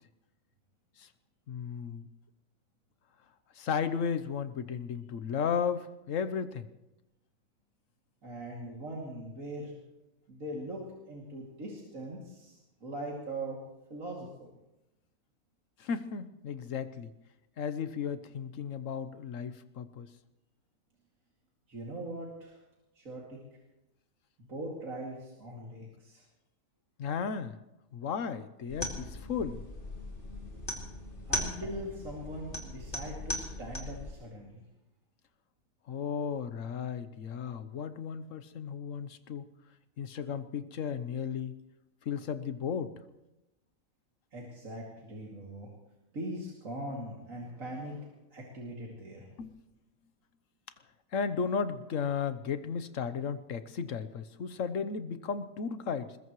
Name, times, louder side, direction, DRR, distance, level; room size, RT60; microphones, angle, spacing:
voice 1, 1.5-2.1 3.5-6.7 15.8-17.1 17.6-20.1 27.0-27.6 27.9-29.6 35.9-39.5 40.0-41.5 42.0-42.9 49.4-49.5 51.1-56.2, left 6 dB, 65° left, 11 dB, 1.3 m, -34 dB
voice 2, 8.2-9.7 10.3-13.6 13.9-14.5 21.7-22.6 23.0-23.4 24.4-26.2 31.3-34.6 44.3-45.7 46.1-49.3, right 1 dB, 65° right, -3 dB, 3.0 m, -41 dB
sound 1, 28.7-34.1, left 1 dB, 35° left, 3.1 m, -38 dB
21.5 x 20.5 x 3.2 m, 0.94 s
omnidirectional pair, 1.5 m